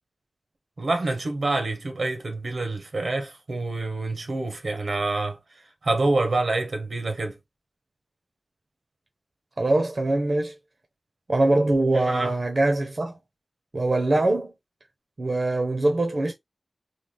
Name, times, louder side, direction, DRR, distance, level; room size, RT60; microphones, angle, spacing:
voice 1, 0.8-5.4 5.8-7.4 11.9-12.3, right 2 dB, 85° right, 1.1 m, -27 dB
voice 2, 9.6-10.5 11.3-13.2 13.7-14.5 15.2-16.3, right 2 dB, 60° right, 0.8 m, -23 dB
3.2 x 2.3 x 3.8 m
wide cardioid pair, 65°, 0 cm